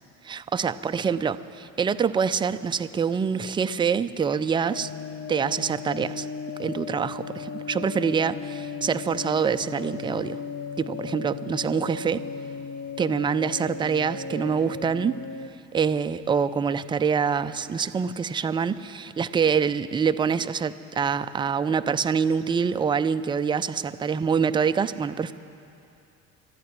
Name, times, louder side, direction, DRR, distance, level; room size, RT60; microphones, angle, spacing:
voice 1, 0.2-4.9 5.3-6.3 6.6-10.4 10.8-12.3 13.0-15.2 15.7-25.3, right 6 dB, 10° right, 11 dB, 0.3 m, -25 dB
sound 1, 4.7-15.5, left 6 dB, 30° left, 0.6 m, -36 dB
27.0 x 13.5 x 3.0 m, 2.7 s
hypercardioid pair, 65°, 45 cm